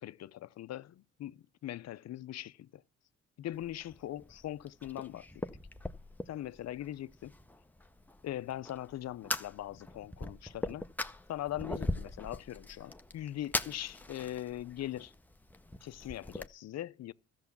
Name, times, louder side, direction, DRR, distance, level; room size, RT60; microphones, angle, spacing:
voice 1, 0.0-2.8 3.4-5.4 6.3-7.3 8.2-10.9 11.3-15.1 15.8-17.1, left 13 dB, 60° left, 0.6 m, -41 dB
Fire, 3.5-16.5, left 1 dB, 5° left, 0.7 m, -41 dB
13.5 x 7.0 x 7.1 m
cardioid pair, 90°, 30 cm